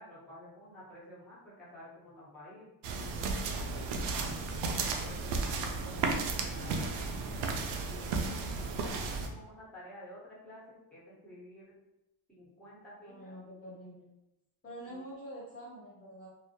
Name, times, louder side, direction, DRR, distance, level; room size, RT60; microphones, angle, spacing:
voice 1, 0.0-4.4 4.6-7.2 7.9-11.8 12.3-13.3 14.9-15.0, left 1 dB, ahead, -8 dB, 1.1 m, -51 dB
sound 1, 2.8-9.3, right 4 dB, 65° right, 0.5 m, -34 dB
voice 2, 13.0-14.0 14.6-16.3, equal, 25° left, -10 dB, 0.8 m, -46 dB
2.1 x 2.1 x 2.8 m, 0.95 s
cardioid pair, 90°, 47 cm